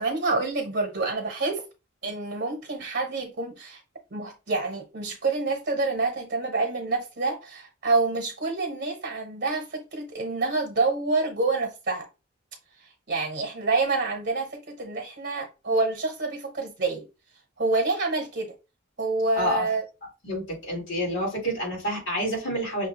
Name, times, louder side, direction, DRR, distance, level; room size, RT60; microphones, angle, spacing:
voice 1, 0.0-1.6 2.0-3.8 4.1-12.1 12.8-17.0 17.6-18.5 19.0-19.8, right 3 dB, 55° right, 0.9 m, -27 dB
voice 2, 20.2-22.9, equal, 70° left, 2.3 m, -28 dB
5.9 x 2.2 x 2.9 m
head